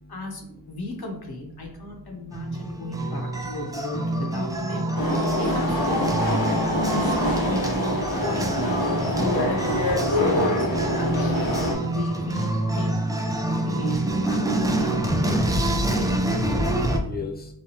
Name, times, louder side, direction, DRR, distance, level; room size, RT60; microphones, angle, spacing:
voice 1, 0.1-4.9 5.4-7.7 8.2-10.7 11.0-13.0 13.5-14.9 15.9-16.1, left 1 dB, 55° left, 1 dB, 0.8 m, -36 dB
voice 2, 2.1-3.0 15.3-17.5, left 4 dB, 20° left, 1 dB, 0.7 m, -42 dB
sound 1, 2.3-17.0, right 1 dB, 10° right, 0.4 m, -26 dB
sound 2, 5.0-11.7, left 1 dB, 85° left, 0.9 m, -25 dB
3.1 x 2.2 x 2.8 m, 0.70 s
cardioid pair, 40°, 43 cm